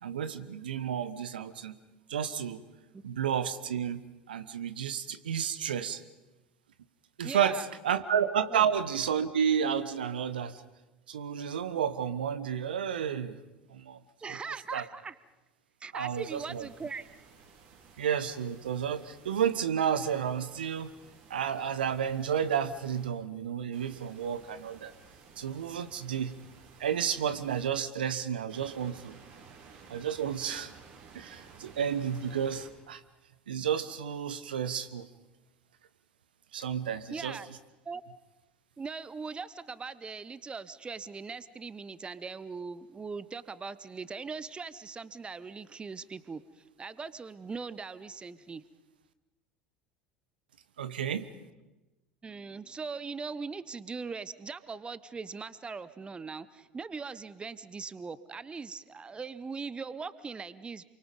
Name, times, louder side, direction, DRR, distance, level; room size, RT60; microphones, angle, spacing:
voice 1, 0.0-1.8 2.1-2.6 3.0-4.0 4.3-6.0 7.2-10.6 11.1-13.4 13.7-14.0 14.3-14.4 14.7-14.8 15.9-16.7 18.0-20.9 21.3-24.9 25.4-26.3 26.8-29.1 29.9-30.7 31.1-33.0 33.5-35.1 36.5-37.4 50.8-51.3, right 8 dB, 75° right, 13 dB, 1.1 m, -31 dB
voice 2, 7.2-7.7 8.5-8.7 14.2-15.2 15.8-17.1 37.1-37.5 37.8-38.0 38.8-48.6 52.2-60.8, right 4 dB, 20° right, 16 dB, 0.9 m, -40 dB
sound 1, 16.1-19.6 19.9-23.1 23.7-27.7 28.5-32.7, right 5 dB, 50° right, 4.9 m, -55 dB
28.0 x 24.0 x 5.3 m, 1.0 s
figure-of-eight pair, 70°, 5 cm